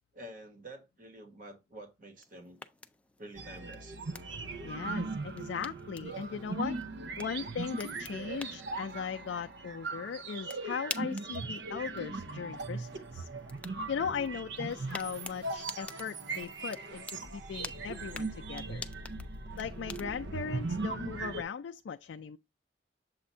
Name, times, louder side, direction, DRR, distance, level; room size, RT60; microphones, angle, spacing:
voice 1, 0.1-2.6 3.2-4.0 14.6-14.7 17.5-17.7, right 1 dB, 50° right, 1.3 m, -49 dB
sound 1, 2.1-20.3, left 3 dB, 5° left, 0.3 m, -49 dB
sound 2, 3.4-21.4, right 3 dB, 70° right, 0.7 m, -39 dB
voice 2, 4.6-6.8 7.2-13.3 13.9-18.9 19.6-22.4, left 6 dB, 85° left, 0.4 m, -38 dB
7.3 x 2.5 x 5.5 m
head